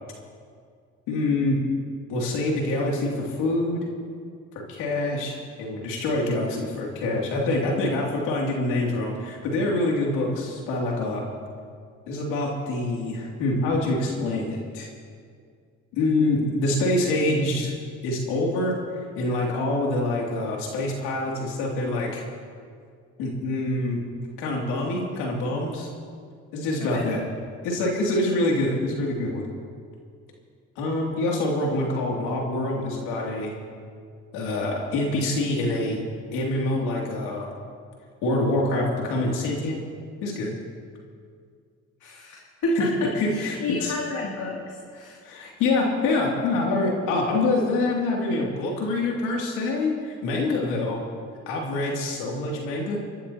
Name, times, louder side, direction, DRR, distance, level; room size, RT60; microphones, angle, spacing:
voice 1, 1.1-1.6 2.1-3.8 4.7-5.3 5.6-11.2 12.1-14.9 15.9-17.7 18.0-18.7 19.2-22.2 23.2-24.0 24.4-25.9 26.5-27.2 27.6-29.4 30.8-33.5 34.3-36.0 36.3-37.5 38.2-39.8 40.2-40.5 42.8-42.9 43.2-43.9 45.2-51.0 51.5-53.0, left 2 dB, 90° left, -2 dB, 2.7 m, -25 dB
voice 2, 26.8-27.1 42.0-45.2, left 1 dB, 70° left, -3 dB, 2.6 m, -30 dB
28.5 x 12.0 x 2.9 m, 2.2 s
supercardioid pair, 70°, 31 cm